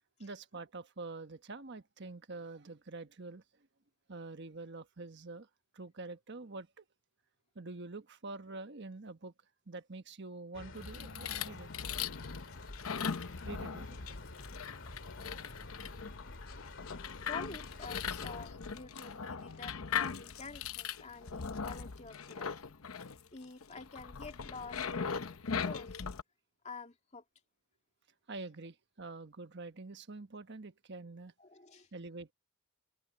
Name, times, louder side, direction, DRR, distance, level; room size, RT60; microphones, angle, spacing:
voice 1, 0.2-3.4 4.1-5.5 5.7-6.8 7.5-9.3 9.7-11.7 13.4-14.0 28.3-31.3 31.9-32.3, right 3 dB, 55° right, 1.3 m, -46 dB
sound 1, 10.5-18.5, left 2 dB, 65° left, 2.3 m, -49 dB
sound 2, 10.8-26.2, left 6 dB, 90° left, 0.9 m, -40 dB
voice 2, 17.3-22.7 23.3-26.0 26.6-27.2 31.4-31.9, left 4 dB, 35° left, 2.2 m, -48 dB
head